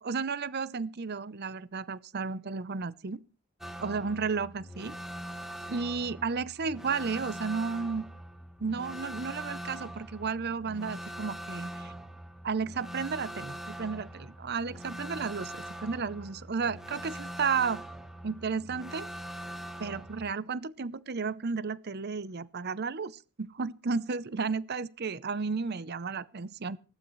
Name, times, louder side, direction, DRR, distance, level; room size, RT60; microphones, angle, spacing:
voice 1, 0.0-3.2 3.8-5.0 5.7-8.0 8.6-11.9 12.4-17.8 18.2-19.1 19.8-26.8, right 5 dB, 45° right, 0.6 m, -33 dB
sound 1, 3.6-20.3, equal, ahead, 1.3 m, -42 dB
19.5 x 15.0 x 3.2 m
head